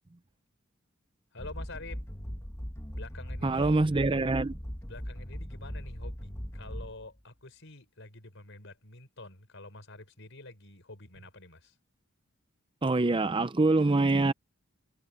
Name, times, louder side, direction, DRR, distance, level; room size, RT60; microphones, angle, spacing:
voice 1, 1.3-2.1 2.9-3.8 4.8-11.8, left 2 dB, 65° left, 5.5 m, -47 dB
sound 1, 1.4-7.2, equal, 15° left, 1.3 m, -39 dB
voice 2, 3.4-4.5 12.8-14.3, right 2 dB, 25° right, 0.6 m, -25 dB
head